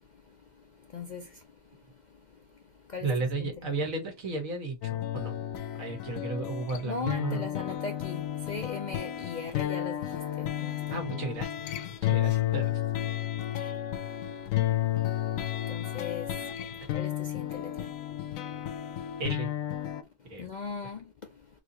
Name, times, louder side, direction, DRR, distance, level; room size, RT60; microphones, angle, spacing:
voice 1, 0.9-1.3 2.9-3.1 3.4-3.7 6.8-11.1 15.7-16.3 16.9-17.9 20.4-21.0, left 5 dB, 55° left, 0.5 m, -38 dB
voice 2, 3.0-5.4 5.8-7.5 10.9-11.5 12.0-12.7 13.1-13.2 16.8-16.9 19.2-19.5 20.3-20.5, right 3 dB, 85° right, 1.8 m, -34 dB
sound 1, 4.8-20.0, left 12 dB, 85° left, 1.0 m, -32 dB
4.2 x 2.7 x 2.8 m
omnidirectional pair, 1.4 m